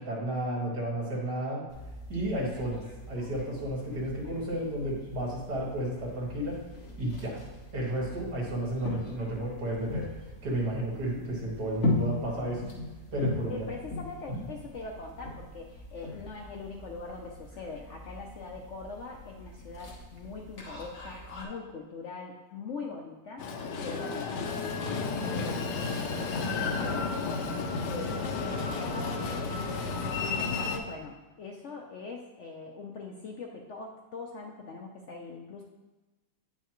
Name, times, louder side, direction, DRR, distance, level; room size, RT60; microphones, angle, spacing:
voice 1, 0.0-1.6 2.1-6.6 7.0-7.4 7.7-10.1 10.4-12.6 13.1-13.6 14.3-14.4, right 1 dB, 75° right, -4 dB, 2.4 m, -32 dB
sound 1, 1.7-21.4, left 2 dB, 45° left, 1.4 m, -39 dB
voice 2, 13.5-23.5 23.8-35.6, left 4 dB, 65° left, 1 dB, 0.8 m, -42 dB
Train, 23.4-30.8, left 4 dB, 80° left, 1.3 m, -32 dB
9.1 x 5.6 x 3.0 m, 1.1 s
omnidirectional pair, 1.8 m